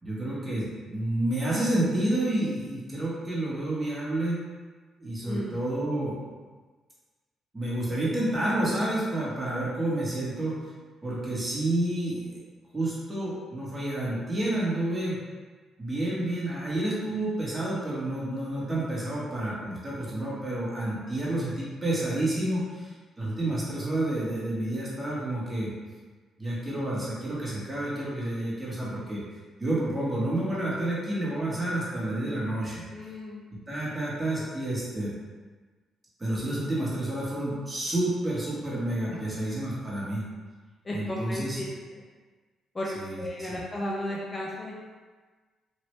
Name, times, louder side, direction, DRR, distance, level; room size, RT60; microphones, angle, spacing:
voice 1, 0.0-4.4 5.0-6.2 7.5-10.6 11.0-12.4 12.7-15.2 15.8-25.7 26.4-29.2 29.6-32.8 33.7-35.1 36.2-40.2 40.9-41.6 42.9-43.6, right 1 dB, 20° right, -7 dB, 1.2 m, -29 dB
voice 2, 5.2-5.6 32.9-33.4 39.1-39.4 40.8-41.6 41.9-42.0 42.7-42.9 43.2-44.7, left 1 dB, 30° left, -4 dB, 0.5 m, -34 dB
3.1 x 2.5 x 3.1 m, 1.4 s
cardioid pair, 90°, 0 cm